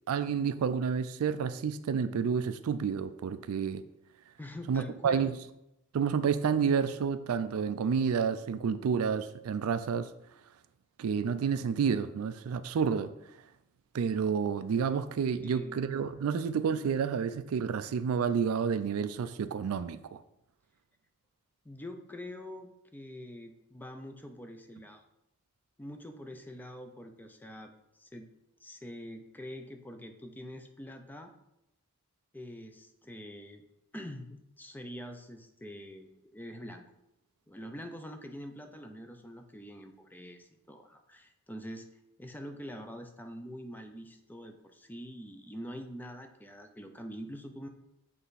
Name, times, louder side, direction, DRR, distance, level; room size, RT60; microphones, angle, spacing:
voice 1, 0.1-3.8 4.7-5.3 5.9-10.1 11.0-13.1 13.9-20.2, right 6 dB, 70° right, 12 dB, 0.4 m, -30 dB
voice 2, 4.4-5.3 15.4-15.8 21.6-25.0 25.8-27.7 28.0-28.3 28.6-31.3 32.3-33.6 33.9-36.8 37.5-41.9 42.2-47.7, equal, 10° left, 6 dB, 0.5 m, -45 dB
7.3 x 3.3 x 4.0 m, 0.85 s
head